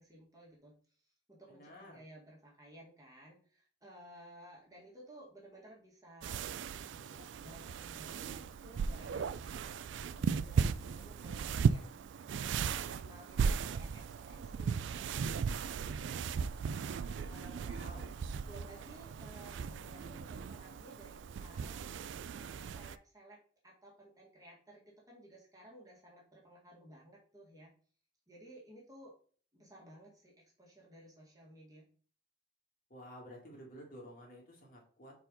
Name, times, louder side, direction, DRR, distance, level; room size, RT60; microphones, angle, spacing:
voice 1, 0.0-11.9 12.6-16.3 16.8-18.1 18.4-21.9 22.3-27.7 28.3-29.1 29.5-31.9, right 1 dB, 20° right, -4 dB, 1.7 m, -56 dB
voice 2, 1.5-2.0 17.5-18.1 32.9-35.2, equal, 45° left, -1 dB, 2.0 m, -52 dB
sound 1, 6.2-23.0, right 6 dB, 65° right, 0.3 m, -37 dB
4.5 x 4.3 x 5.1 m, 0.44 s
head